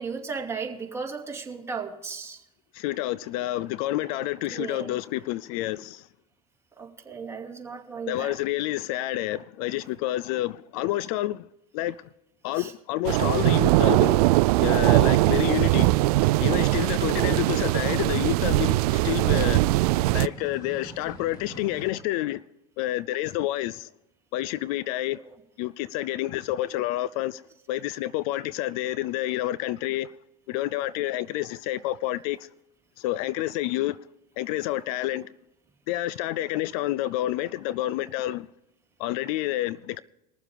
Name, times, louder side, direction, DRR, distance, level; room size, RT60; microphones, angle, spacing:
voice 1, 0.0-2.4 4.5-5.0 6.8-8.4 12.5-12.7 25.1-25.2, right 5 dB, 15° right, 2.5 m, -35 dB
voice 2, 2.7-6.1 8.1-11.5 11.7-12.0 12.4-14.3 14.6-15.9 16.2-19.7 20.1-22.4 22.8-23.9 24.3-25.2 25.6-27.4 27.7-30.1 30.5-32.5 33.0-34.0 34.4-35.3 35.9-38.5 39.0-40.0, left 15 dB, 65° left, 0.4 m, -29 dB
sound 1, 13.0-20.3, right 19 dB, 75° right, 0.4 m, -21 dB
sound 2, 16.9-21.9, equal, 20° left, 2.5 m, -45 dB
21.5 x 7.4 x 5.1 m
hypercardioid pair, 100°, 20 cm